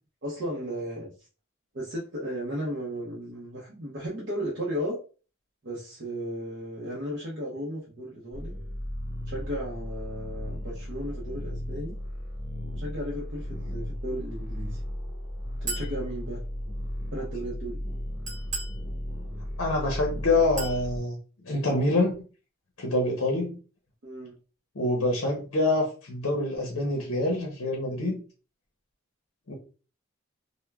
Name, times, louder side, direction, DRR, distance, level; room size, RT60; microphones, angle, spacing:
voice 1, 0.2-1.3 1.7-5.0 5.6-8.5 9.3-12.0 12.7-14.8 15.6-16.4 17.1-17.8 24.0-24.3, equal, 50° right, -5 dB, 0.6 m, -35 dB
sound 1, 8.3-21.0, equal, 35° left, 0.8 m, -35 dB
Chink clink, 15.7-16.0 18.3-18.8 20.6-20.8, right 3 dB, 35° right, 1.0 m, -34 dB
voice 2, 19.6-21.2 21.4-22.1 22.8-23.6 24.8-28.2 29.5-29.6, left 2 dB, 65° left, 0 dB, 0.7 m, -26 dB
3.3 x 2.1 x 2.2 m, 0.36 s
head